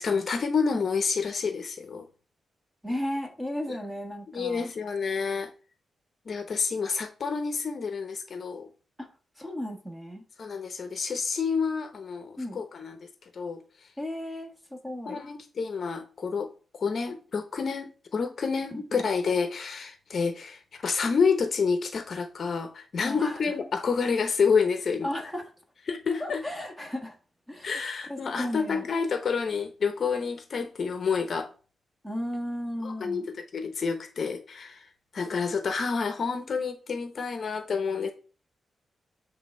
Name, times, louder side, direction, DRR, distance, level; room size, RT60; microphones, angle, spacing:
voice 1, 0.0-2.1 4.3-5.5 6.3-8.7 10.4-13.1 13.3-13.6 15.1-16.5 16.8-25.1 25.9-26.4 27.6-31.5 32.8-33.2 33.5-34.9 35.1-38.1, left 5 dB, 45° left, 0.8 m, -29 dB
voice 2, 2.8-4.7 9.0-9.1 9.4-10.2 12.4-12.6 14.0-15.2 18.7-19.0 23.0-23.4 25.0-25.5 26.2-27.2 27.5-27.8 28.1-28.9 32.0-33.3, left 1 dB, 5° right, 1.4 m, -35 dB
8.2 x 3.4 x 5.4 m
wide cardioid pair, 165°, 0 cm